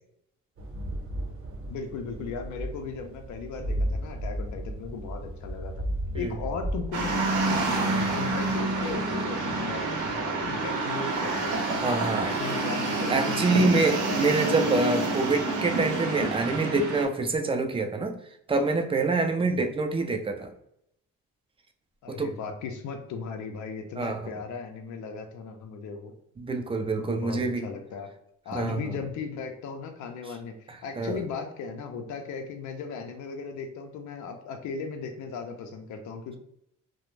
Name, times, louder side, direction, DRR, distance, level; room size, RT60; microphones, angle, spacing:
sound 1, 0.6-10.7, equal, 45° right, 0.8 m, -35 dB
voice 1, 1.7-5.8 6.1-11.6 12.3-13.4 19.4-19.5 22.0-26.1 27.0-28.1 28.4-36.4, left 5 dB, 70° left, 4 dB, 0.5 m, -37 dB
sound 2, 6.9-17.0, right 2 dB, 80° right, 0.7 m, -28 dB
voice 2, 11.8-12.4 13.1-18.1 18.5-20.5 22.1-22.3 24.0-24.2 26.4-27.7 28.5-29.0 31.0-31.2, right 3 dB, 20° right, 5 dB, 0.4 m, -26 dB
2.4 x 2.0 x 3.1 m, 0.77 s
cardioid pair, 90°, 30 cm